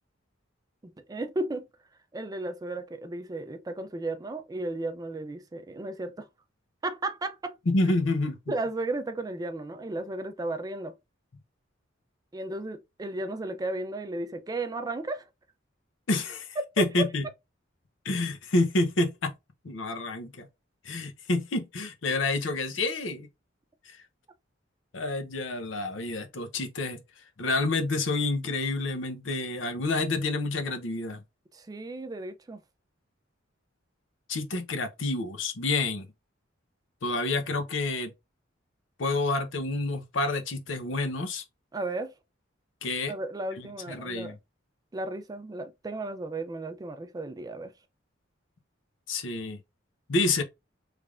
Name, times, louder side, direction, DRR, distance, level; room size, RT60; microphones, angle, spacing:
voice 1, 0.8-1.7 2.1-6.3 6.8-7.6 8.5-10.9 12.3-15.2 16.8-16.9 31.5-32.6 41.7-42.1 43.1-44.4 44.9-47.7, right 2 dB, 20° right, 0.3 m, -34 dB
voice 2, 7.7-8.4 16.1-17.2 18.0-19.3 19.6-20.5 20.8-23.3 23.9-24.0 24.9-27.0 27.4-31.2 34.3-36.1 37.0-38.1 39.0-41.4 42.8-43.1 43.9-44.3 49.1-49.6 50.1-50.4, left 2 dB, 75° left, 0.7 m, -28 dB
3.3 x 3.3 x 2.4 m
head